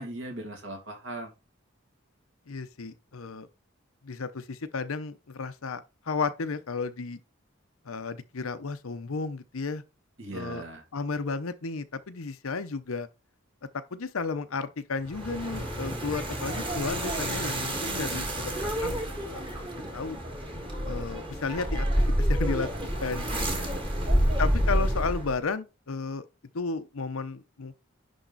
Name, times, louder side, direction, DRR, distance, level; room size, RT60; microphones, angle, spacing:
voice 1, 0.0-1.3 10.2-10.8 23.3-24.3, right 1 dB, 65° right, 2.5 m, -39 dB
voice 2, 2.5-3.5 4.0-7.2 7.8-9.8 10.3-10.6 10.9-13.1 13.9-19.5 19.9-20.2 20.8-21.9 22.2-23.3 24.4-26.3 26.5-27.8, left 4 dB, 80° left, 0.8 m, -33 dB
sound 1, 15.0-25.4, equal, 25° right, 1.7 m, -29 dB
10.5 x 3.6 x 4.0 m
head